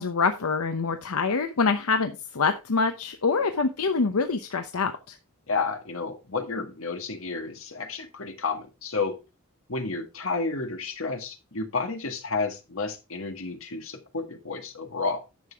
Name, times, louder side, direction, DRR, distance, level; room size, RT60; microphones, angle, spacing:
voice 1, 0.0-5.2, left 4 dB, 90° left, 7 dB, 0.8 m, -25 dB
voice 2, 5.5-9.2 9.7-15.2, left 4 dB, 70° left, 5 dB, 1.8 m, -31 dB
10.5 x 6.7 x 3.5 m, 0.27 s
head